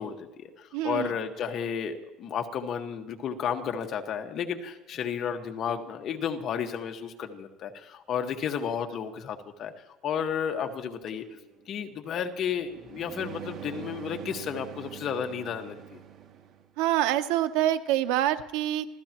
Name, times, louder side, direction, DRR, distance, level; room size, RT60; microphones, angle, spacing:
voice 1, 0.0-9.7 10.0-11.2 11.7-16.0, left 7 dB, 40° left, 4 dB, 1.5 m, -32 dB
voice 2, 0.7-1.1 16.8-18.9, right 13 dB, 85° right, 10 dB, 0.8 m, -26 dB
sound 1, 11.1-16.6, right 9 dB, 50° right, 2.4 m, -44 dB
27.5 x 16.0 x 3.0 m, 1.0 s
cardioid pair, 150°, 0 cm